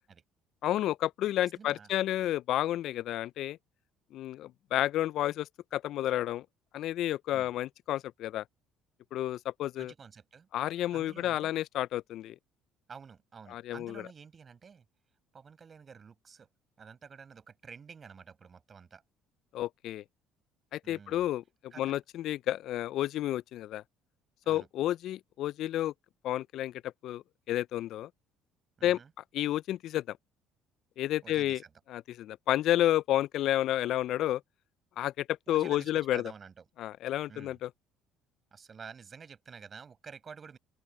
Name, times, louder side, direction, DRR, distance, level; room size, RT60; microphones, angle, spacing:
voice 1, 0.6-3.6 4.1-6.5 6.7-8.4 9.1-9.9 10.5-12.4 13.5-13.9 19.5-20.0 20.7-21.4 21.8-23.8 24.5-25.9 26.2-28.1 28.8-29.0 29.3-30.2 31.0-31.6 31.9-34.4 35.0-36.3 36.8-37.7, left 13 dB, 65° left, 0.3 m, -31 dB
voice 2, 1.4-1.9 7.3-7.5 9.8-10.5 10.9-11.5 12.9-14.8 15.3-16.5 16.8-19.0 20.8-21.3 21.7-21.8 24.4-24.7 28.8-29.1 31.2-31.7 35.5-36.7 37.3-37.6 38.5-40.6, right 6 dB, 40° right, 5.2 m, -50 dB
open air
supercardioid pair, 75°, 0 cm